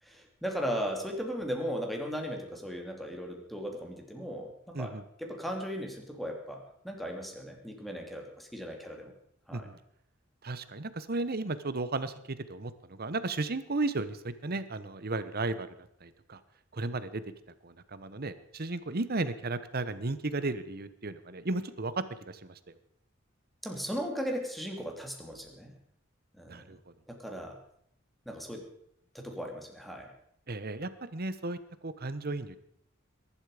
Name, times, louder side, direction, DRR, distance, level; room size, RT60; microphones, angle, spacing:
voice 1, 0.0-4.9 5.2-9.1 9.5-9.7 23.6-25.7 26.3-26.7 27.1-27.6 28.2-28.6 29.1-30.1, equal, ahead, 2 dB, 2.9 m, -37 dB
voice 2, 10.4-16.4 16.7-17.2 17.6-22.6 26.5-26.8 30.5-32.6, right 2 dB, 50° right, 13 dB, 1.1 m, -34 dB
21.5 x 11.5 x 5.0 m, 0.72 s
head